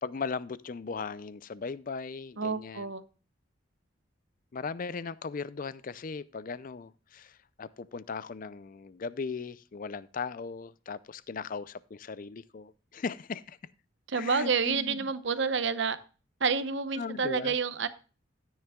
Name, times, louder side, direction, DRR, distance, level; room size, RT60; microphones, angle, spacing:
voice 1, 0.0-2.9 4.5-13.6 14.1-15.0 17.0-17.5, left 5 dB, 45° left, 0.4 m, -38 dB
voice 2, 2.4-3.0 14.1-16.0 16.4-17.9, right 5 dB, 65° right, 0.8 m, -29 dB
13.5 x 9.5 x 2.3 m
head